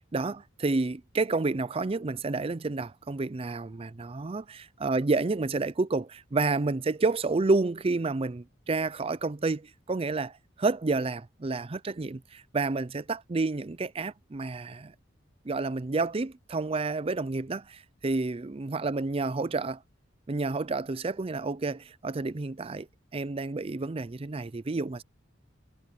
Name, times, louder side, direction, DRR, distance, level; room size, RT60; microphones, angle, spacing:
voice 1, 0.1-14.9 15.5-19.8 20.3-22.9 23.1-25.0, right 3 dB, 30° right, 0.5 m, -30 dB
head